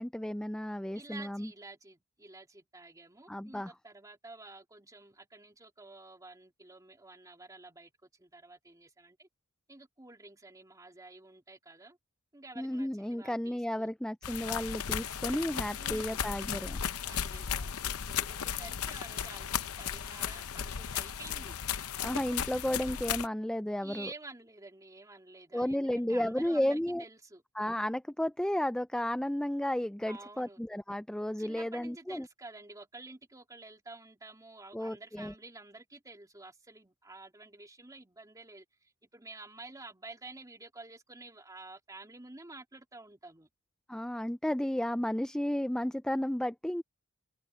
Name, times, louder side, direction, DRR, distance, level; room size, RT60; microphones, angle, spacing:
voice 1, 0.0-1.5 3.3-3.7 12.6-16.8 22.0-24.1 25.5-27.0 27.6-32.3 34.7-35.3 43.9-46.8, left 1 dB, 5° left, 0.4 m, -33 dB
voice 2, 0.9-9.3 9.7-12.0 12.3-13.9 15.8-16.3 17.1-21.6 23.8-27.4 30.1-30.6 31.4-43.5, right 2 dB, 15° right, 2.8 m, -50 dB
sound 1, 14.2-23.3, left 8 dB, 75° left, 0.8 m, -35 dB
head